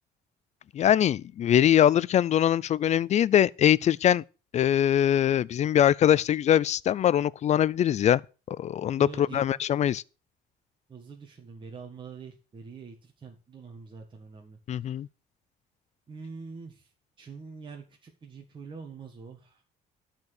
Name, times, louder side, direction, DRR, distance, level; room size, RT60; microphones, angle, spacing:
voice 1, 0.7-4.2 4.5-8.2 8.5-10.0 14.7-15.1, left 10 dB, 40° left, 0.4 m, -22 dB
voice 2, 9.0-9.6 10.9-15.0 16.1-16.9 17.2-19.6, right 5 dB, 30° right, 1.7 m, -45 dB
12.0 x 4.5 x 6.5 m
cardioid pair, 110°, 17 cm